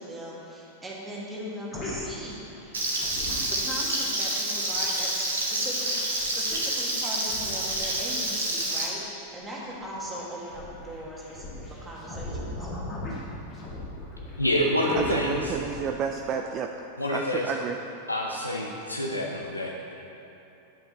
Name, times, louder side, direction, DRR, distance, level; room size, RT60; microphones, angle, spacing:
voice 1, 0.0-2.5 3.5-12.7, equal, 10° right, -5 dB, 1.6 m, -39 dB
sound 1, 1.7-3.8 4.2-9.1 9.5-16.3, left 1 dB, 30° left, 1.8 m, -39 dB
Frying (food), 2.7-8.9, right 1 dB, 70° right, 1.1 m, -28 dB
voice 2, 14.4-15.6 17.0-17.5 18.1-19.9, left 1 dB, 85° left, -1 dB, 0.6 m, -27 dB
voice 3, 14.9-16.7 17.1-17.8, right 7 dB, 35° right, 4 dB, 0.3 m, -31 dB
9.4 x 5.5 x 4.1 m, 2.9 s
figure-of-eight pair, 90°, 0 cm